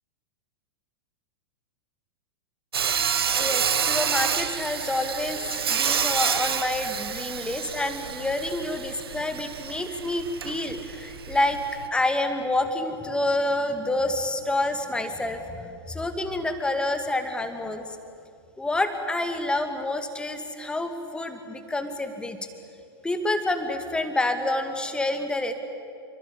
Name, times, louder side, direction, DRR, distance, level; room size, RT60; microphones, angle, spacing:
Sawing, 2.7-11.9, right 7 dB, 65° right, 1.2 m, -28 dB
voice 1, 2.9-11.6 11.9-18.0 18.6-22.4 23.0-25.5, left 2 dB, 5° left, 7 dB, 2.3 m, -28 dB
28.0 x 24.5 x 8.5 m, 2.5 s
figure-of-eight pair, 100°, 13 cm